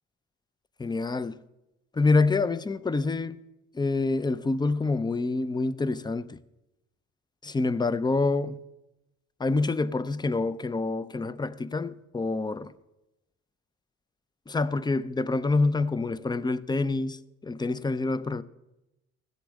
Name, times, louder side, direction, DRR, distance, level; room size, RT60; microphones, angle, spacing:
voice 1, 0.8-1.4 2.0-3.4 3.7-6.4 7.4-8.6 9.4-12.7 14.5-18.4, left 3 dB, 15° left, 0.5 m, -27 dB
15.5 x 8.2 x 6.3 m
cardioid pair, 90°, 30 cm